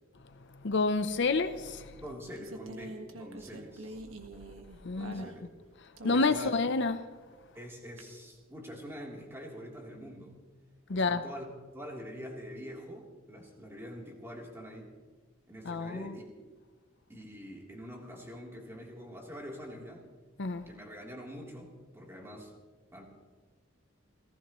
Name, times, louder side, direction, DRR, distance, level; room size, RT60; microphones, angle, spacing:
voice 1, 0.6-1.9 4.8-5.2 6.0-7.0 10.9-11.2 15.7-16.1 20.4-20.6, left 3 dB, 60° left, 0.7 m, -29 dB
sound 1, 1.7-5.6 6.0-6.7 8.0-8.1, right 2 dB, 80° right, 1.6 m, -45 dB
voice 2, 1.9-4.0 4.9-5.5 6.1-6.5 7.5-10.4 10.9-14.9 15.5-16.5 17.1-20.0 20.7-22.5 22.9-23.0, equal, 10° right, 3.4 m, -45 dB
29.5 x 15.0 x 3.1 m
head